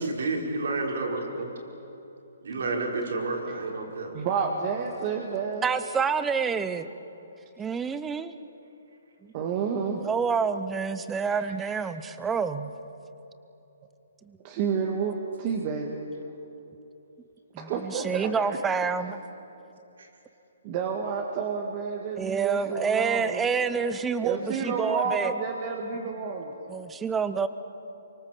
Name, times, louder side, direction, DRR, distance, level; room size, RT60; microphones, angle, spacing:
voice 1, 0.0-1.5 2.4-4.1 20.0-20.1, right 3 dB, 75° right, 0 dB, 5.2 m, -30 dB
voice 2, 4.1-5.7 9.3-10.0 11.3-11.7 14.4-16.0 17.6-18.6 20.6-23.5 24.2-26.5, right 6 dB, 30° right, 1 dB, 1.8 m, -30 dB
voice 3, 5.6-6.9 7.6-8.4 9.2-9.3 9.9-12.7 14.2-14.4 17.5-19.2 22.2-25.3 26.7-27.5, right 6 dB, 10° right, 12 dB, 0.8 m, -28 dB
26.5 x 24.5 x 7.5 m, 3.0 s
hypercardioid pair, 165°, 0 cm